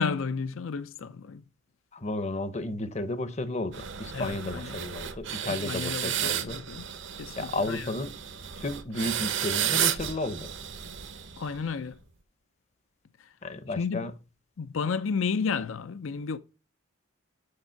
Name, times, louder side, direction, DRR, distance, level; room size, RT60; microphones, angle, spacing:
voice 1, 0.0-1.4 4.1-4.8 5.5-6.8 7.2-7.9 11.4-12.0 13.2-13.3 13.8-14.1 14.6-16.4, left 5 dB, 70° left, 0.5 m, -32 dB
voice 2, 1.9-6.6 7.4-8.2 8.6-10.5 13.4-14.1, left 2 dB, 30° left, 0.7 m, -33 dB
sound 1, 3.7-11.7, right 10 dB, 60° right, 0.8 m, -33 dB
6.7 x 6.7 x 5.7 m
head